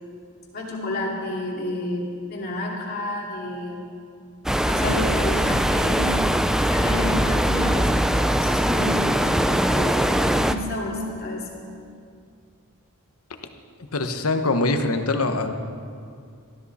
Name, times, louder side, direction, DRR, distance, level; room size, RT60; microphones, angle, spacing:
voice 1, 0.5-2.0 2.3-3.9 4.7-6.1 6.6-11.6, left 1 dB, 45° left, -3 dB, 2.8 m, -30 dB
sound 1, 4.5-10.6, equal, ahead, 0.4 m, -21 dB
voice 2, 13.9-15.5, left 2 dB, 80° left, 7 dB, 1.1 m, -23 dB
18.5 x 13.5 x 4.3 m, 2.3 s
head